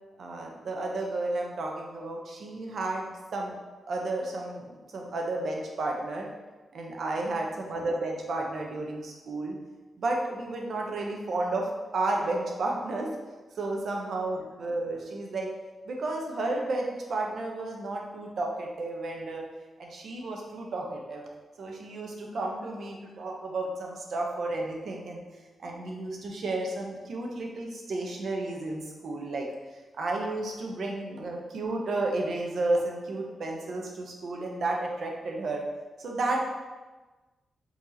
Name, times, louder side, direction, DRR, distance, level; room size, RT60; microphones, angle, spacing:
voice 1, 0.2-3.1 3.3-3.6 3.9-6.3 6.7-9.6 10.0-13.1 13.6-15.5 15.9-19.4 19.8-21.2 21.6-25.2 25.6-29.5 30.0-35.6 36.0-36.4, right 2 dB, 70° right, 0 dB, 0.8 m, -32 dB
4.4 x 3.9 x 2.8 m, 1.2 s
cardioid pair, 100°, 0 cm